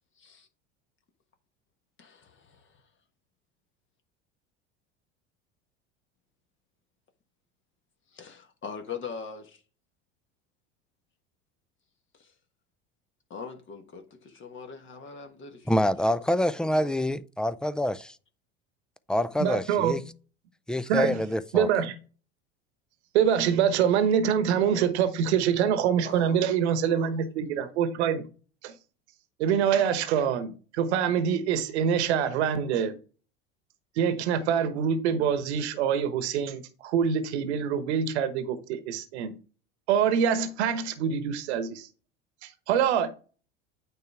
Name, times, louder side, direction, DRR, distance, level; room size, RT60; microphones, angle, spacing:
voice 1, 0.2-0.5 2.0-2.8 8.1-9.6 12.2-12.3 13.3-15.7 16.6-16.9 26.0-26.5 26.9-27.2, left 6 dB, 35° left, 1.3 m, -42 dB
voice 2, 15.7-18.0 19.1-20.0 20.7-21.7, left 1 dB, 5° left, 0.4 m, -26 dB
voice 3, 19.4-19.9 20.9-21.2 21.5-21.9 23.1-28.3 28.6-28.7 29.4-32.9 34.0-39.4 39.9-41.9 42.4-43.1, right 8 dB, 75° right, 1.2 m, -25 dB
9.1 x 3.5 x 4.8 m
hypercardioid pair, 85°, 33 cm